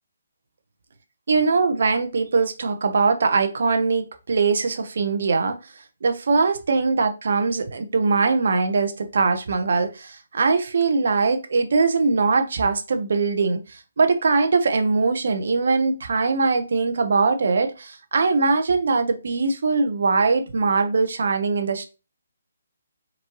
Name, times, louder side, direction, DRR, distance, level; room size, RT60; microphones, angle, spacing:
voice 1, 1.3-5.6 6.0-13.6 14.0-21.8, right 4 dB, 60° right, 1.0 m, -21 dB
4.3 x 4.1 x 3.0 m
hypercardioid pair, 155°, 0 cm